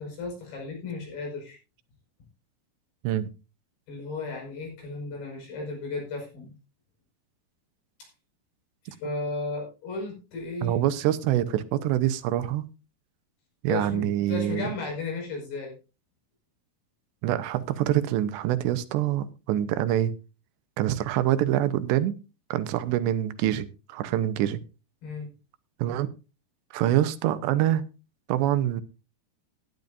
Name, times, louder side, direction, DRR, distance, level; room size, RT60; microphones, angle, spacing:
voice 1, 0.0-1.6 3.9-6.5 8.0-8.1 8.9-10.8 13.7-15.7 25.0-25.3, left 3 dB, 65° left, 7.3 m, -34 dB
voice 2, 10.6-12.7 13.6-14.7 17.2-20.1 20.8-22.2 22.5-24.6 25.8-26.1 26.7-27.8 28.3-28.8, right 12 dB, 85° right, 3.0 m, -25 dB
17.5 x 11.0 x 2.6 m
omnidirectional pair, 5.0 m